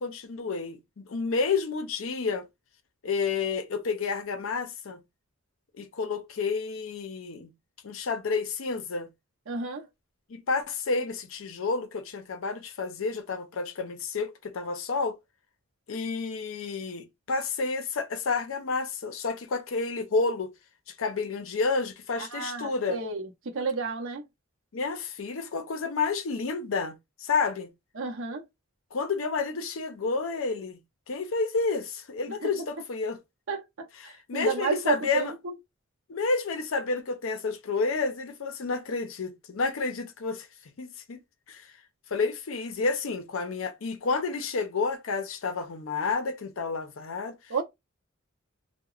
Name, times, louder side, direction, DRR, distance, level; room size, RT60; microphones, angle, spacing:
voice 1, 0.0-2.5 3.0-5.0 5.8-7.5 7.8-9.1 10.3-15.2 15.9-20.5 20.9-23.0 24.7-27.7 28.9-30.8 31.1-33.2 34.0-35.3 36.1-40.5 40.8-41.2 41.5-41.7 42.1-47.4, left 4 dB, 70° left, 0.5 m, -30 dB
voice 2, 9.5-9.9 22.2-24.2 28.0-28.5 32.4-32.5 33.5-35.5 47.5-47.6, right 5 dB, 70° right, 0.7 m, -31 dB
2.9 x 2.1 x 2.3 m
head